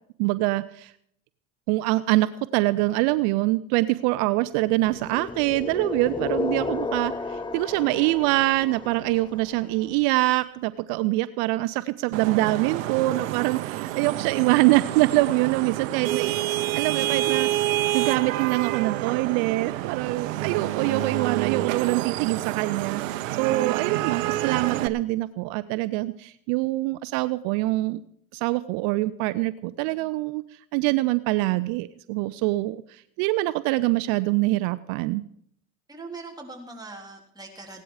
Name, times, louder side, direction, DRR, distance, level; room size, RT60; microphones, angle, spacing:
voice 1, 0.2-0.9 1.7-16.5 16.7-28.0 28.3-30.4 30.7-35.2, right 19 dB, 65° right, 15 dB, 0.7 m, -24 dB
sound 1, 4.8-9.8, left 3 dB, 10° left, 0.8 m, -33 dB
Vehicle horn car horn honking / Traffic noise roadway noise, 12.1-24.9, right 15 dB, 90° right, 0.9 m, -28 dB
voice 2, 35.9-37.8, right 3 dB, 10° right, 0 dB, 3.6 m, -41 dB
17.5 x 11.5 x 4.9 m, 0.69 s
supercardioid pair, 100°, 38 cm